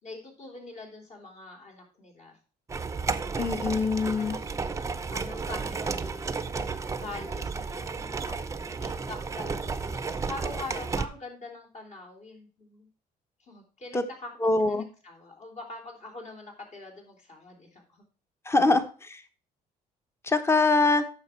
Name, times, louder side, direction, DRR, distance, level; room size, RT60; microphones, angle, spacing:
voice 1, 0.0-2.4 3.1-3.8 4.0-4.6 5.1-6.3 6.8-12.9 13.4-18.0, left 2 dB, 50° left, 1 dB, 3.5 m, -44 dB
sound 1, 2.7-11.1, right 4 dB, 20° right, 0.7 m, -33 dB
voice 2, 3.4-4.4 13.9-14.0 14.4-14.9 18.5-19.2 20.2-21.0, left 3 dB, 15° left, 10 dB, 1.0 m, -23 dB
9.5 x 6.7 x 4.4 m, 0.39 s
cardioid pair, 125°, 16 cm